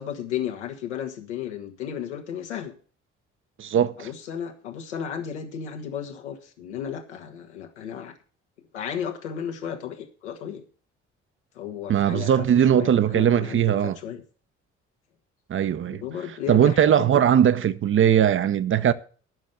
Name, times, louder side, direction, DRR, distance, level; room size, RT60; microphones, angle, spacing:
voice 1, 0.0-2.7 4.0-8.1 8.7-10.6 11.5-12.5 12.7-14.2 15.9-17.2, left 8 dB, 75° left, 1.4 m, -34 dB
voice 2, 3.6-4.1 11.9-14.0 15.5-16.0 16.5-18.9, right 9 dB, 35° right, 0.8 m, -20 dB
10.5 x 6.3 x 7.9 m
figure-of-eight pair, 45°, 35 cm